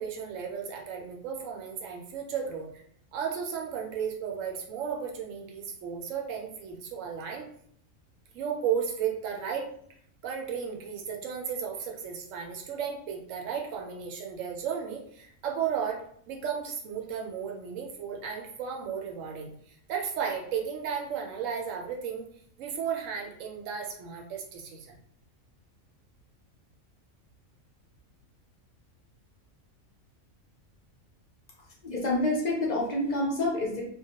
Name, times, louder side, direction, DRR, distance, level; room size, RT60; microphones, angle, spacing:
voice 1, 0.0-2.7 3.1-7.5 8.3-9.7 10.2-22.3 22.6-25.0, right 7 dB, 75° right, 1 dB, 0.9 m, -34 dB
voice 2, 31.8-33.8, left 2 dB, 50° left, -3 dB, 0.5 m, -28 dB
2.2 x 2.1 x 2.8 m, 0.66 s
omnidirectional pair, 1.4 m